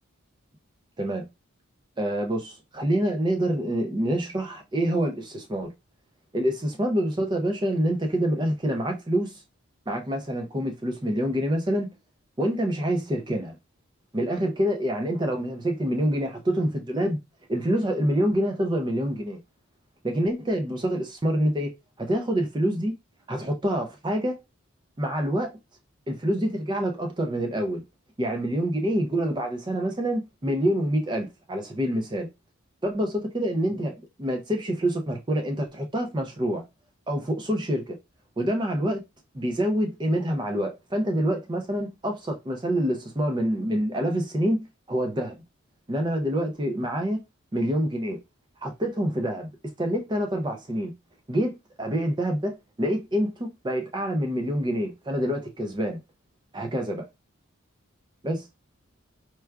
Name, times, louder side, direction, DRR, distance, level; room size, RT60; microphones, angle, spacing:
voice 1, 2.0-5.7 6.3-9.4 9.9-11.9 12.4-13.6 14.1-17.2 17.5-19.4 20.0-21.7 22.0-22.9 23.3-24.4 25.0-25.6 26.1-27.8 28.2-32.3 32.8-36.6 37.1-38.0 38.4-39.0 39.3-45.3 45.9-47.2 47.5-48.2 48.6-49.5 49.8-50.9 51.3-56.0 56.5-57.0 58.2-58.5, equal, 20° right, 0.4 m, -26 dB
4.4 x 2.3 x 2.2 m
head